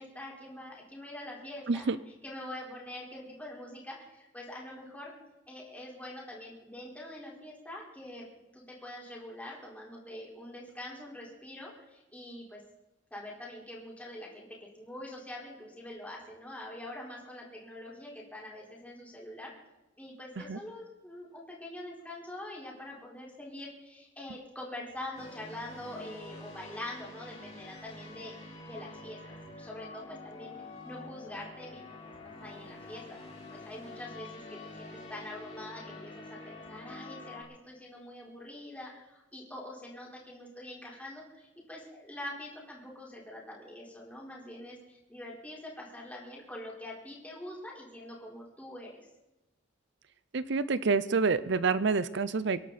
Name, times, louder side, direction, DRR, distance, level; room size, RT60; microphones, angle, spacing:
voice 1, 0.0-1.9 2.2-5.1 5.5-8.3 8.5-12.6 13.1-19.5 20.0-28.3 28.7-30.5 30.8-32.0 32.4-33.2 33.5-48.9, left 1 dB, 10° left, -4 dB, 4.4 m, -44 dB
sound 1, 25.2-37.4, left 2 dB, 35° left, 4.0 m, -47 dB
voice 2, 50.3-52.6, right 4 dB, 65° right, 15 dB, 0.6 m, -28 dB
24.0 x 11.5 x 4.2 m, 0.97 s
head